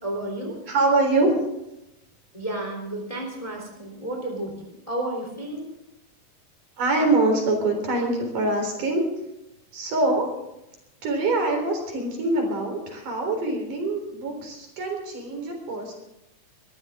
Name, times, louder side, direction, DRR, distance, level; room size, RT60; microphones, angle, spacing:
voice 1, 0.0-0.6 2.3-4.5 4.9-5.7, right 1 dB, 10° left, 1 dB, 3.0 m, -31 dB
voice 2, 0.7-1.3 6.8-9.0 9.7-10.3 11.0-15.9, right 2 dB, 60° right, 2 dB, 5.3 m, -24 dB
23.0 x 14.0 x 3.7 m, 0.87 s
omnidirectional pair, 4.1 m